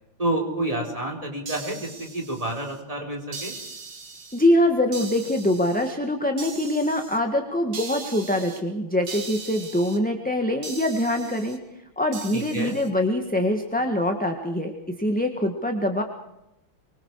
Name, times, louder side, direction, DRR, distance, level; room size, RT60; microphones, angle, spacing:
voice 1, 0.2-3.5 12.3-12.7, right 1 dB, 15° right, 2 dB, 4.5 m, -29 dB
sound 1, 1.5-2.8 3.3-4.5 4.9-5.9 6.4-7.2 7.7-8.6 9.1-10.0 10.6-11.6 12.1-12.9, right 4 dB, 60° right, 2.8 m, -39 dB
voice 2, 4.3-11.6 12.0-14.7 15.0-16.0, left 1 dB, 5° left, 3 dB, 1.5 m, -24 dB
25.0 x 24.5 x 4.9 m, 0.87 s
omnidirectional pair, 2.3 m